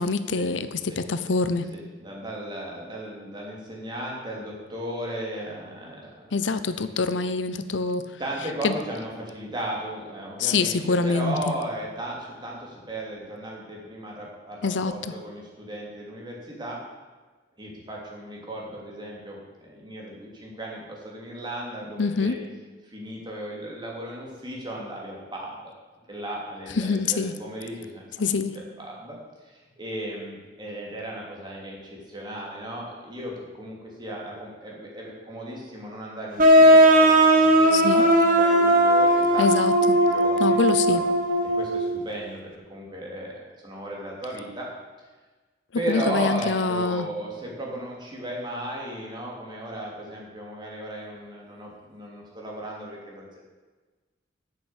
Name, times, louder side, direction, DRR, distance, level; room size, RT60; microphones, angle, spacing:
voice 1, 0.0-1.7 6.3-8.1 8.6-8.8 10.4-11.5 14.6-15.1 22.0-22.4 26.8-27.3 28.2-28.6 37.7-38.0 39.4-40.0 40.4-41.0 45.9-47.1, left 4 dB, 80° left, 12 dB, 0.6 m, -25 dB
voice 2, 1.7-6.2 6.7-6.9 8.2-16.8 17.6-22.4 22.8-25.7 26.1-29.2 29.4-39.5 39.8-41.0 41.6-44.7 45.7-53.4, right 1 dB, 25° right, -2 dB, 2.9 m, -36 dB
sound 1, 36.4-41.9, right 1 dB, 50° right, 1.5 m, -17 dB
8.9 x 6.9 x 8.7 m, 1.3 s
head